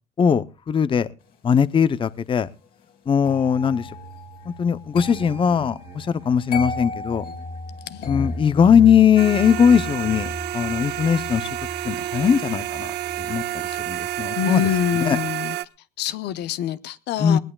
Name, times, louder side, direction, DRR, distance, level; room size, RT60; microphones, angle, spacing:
voice 1, 0.2-1.1 1.4-2.5 3.1-3.9 4.5-7.2 8.1-11.5 11.8-12.9 13.3-13.4 13.9-14.6 15.1-15.2 17.2-17.4, left 7 dB, 30° left, 16 dB, 0.6 m, -19 dB
sound 1, 3.2-14.2 14.5-14.9, left 2 dB, 65° left, 4.6 m, -35 dB
voice 2, 7.8-8.1 13.7-13.8 14.4-15.6 16.0-17.4, left 11 dB, 80° left, 14 dB, 0.9 m, -26 dB
sound 2, 9.2-15.6, right 14 dB, 75° right, 0.7 m, -29 dB
20.0 x 19.0 x 2.3 m, 0.33 s
cardioid pair, 110°, 17 cm